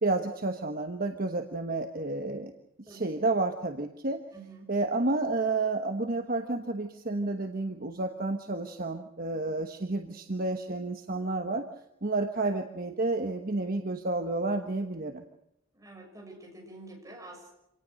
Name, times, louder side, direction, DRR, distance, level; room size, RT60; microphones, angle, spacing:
voice 1, 0.0-2.5 2.9-4.2 4.7-11.6 12.0-15.2, right 2 dB, 45° right, 6 dB, 1.2 m, -30 dB
voice 2, 4.3-4.7 15.7-17.5, right 2 dB, 15° right, 0 dB, 6.9 m, -47 dB
26.5 x 18.5 x 6.5 m, 0.84 s
head